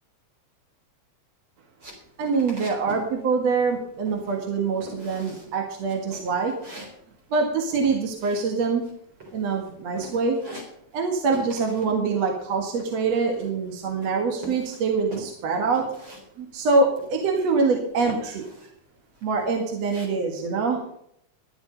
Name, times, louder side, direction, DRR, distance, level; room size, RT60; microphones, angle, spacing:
sound 1, 1.8-3.1 3.3-3.8 4.1-4.5 4.8-5.5 5.9-8.9 9.2-9.7 10.0-11.1 11.3-12.0 12.2-13.7 14.0-16.2 16.5-16.6 17.0-17.5 18.0-18.7 19.1-20.1, right 1 dB, 40° right, 4.7 m, -42 dB
voice 1, 2.2-6.5 7.3-8.9 9.3-10.4 10.9-15.8 16.4-18.4 19.2-20.8, right 4 dB, 65° right, 2 dB, 2.9 m, -24 dB
13.5 x 11.0 x 5.4 m, 0.72 s
omnidirectional pair, 3.3 m